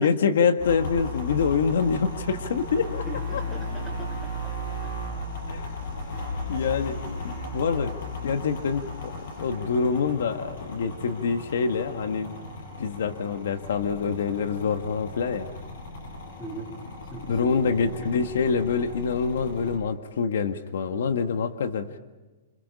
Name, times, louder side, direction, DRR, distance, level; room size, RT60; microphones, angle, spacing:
voice 1, 0.0-3.1 3.3-3.4 5.5-5.7 6.5-7.0 7.2-7.9 8.2-9.1 9.4-12.3 12.8-15.5 17.3-22.0, left 5 dB, 75° left, 7 dB, 1.7 m, -26 dB
sound 1, 0.6-19.8, left 1 dB, 55° left, 7.8 m, -36 dB
voice 2, 3.1-4.5 4.8-4.9 7.2-7.5 16.4-16.8 17.1-17.7 18.1-18.2, right 2 dB, 15° left, -1 dB, 4.3 m, -40 dB
29.5 x 27.5 x 5.6 m, 1.2 s
hypercardioid pair, 175°, 0 cm